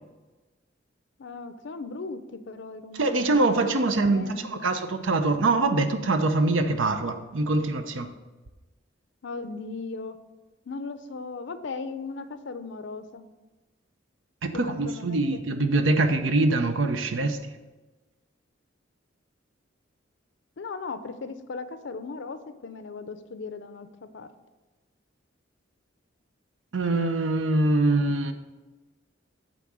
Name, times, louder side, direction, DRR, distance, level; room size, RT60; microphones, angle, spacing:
voice 1, 1.2-3.6 4.0-4.6 9.2-10.2 10.7-13.3 14.5-15.4 20.6-24.3, left 4 dB, 65° left, 11 dB, 0.6 m, -37 dB
voice 2, 2.9-8.1 14.4-17.5 26.7-28.3, right 2 dB, 80° right, 8 dB, 0.7 m, -24 dB
9.1 x 3.7 x 6.2 m, 1.2 s
head